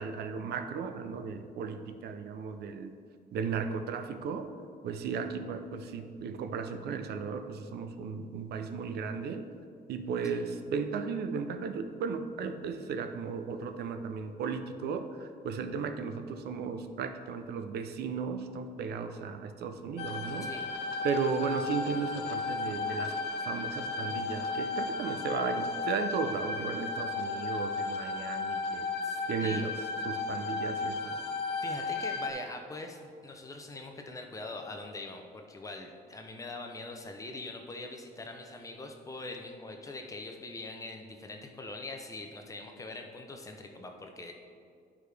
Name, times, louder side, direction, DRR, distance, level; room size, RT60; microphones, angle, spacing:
voice 1, 0.0-2.9 3.3-4.5 4.8-9.5 9.9-20.5 21.0-23.1 23.4-28.9 29.3-29.7 30.1-31.2, right 5 dB, 70° right, 8 dB, 0.5 m, -35 dB
sound 1, 20.0-32.3, left 3 dB, 75° left, 0.6 m, -34 dB
voice 2, 29.0-29.6 31.6-44.3, left 2 dB, 20° left, 3 dB, 0.5 m, -43 dB
11.0 x 4.8 x 3.3 m, 2.3 s
cardioid pair, 175°, 17 cm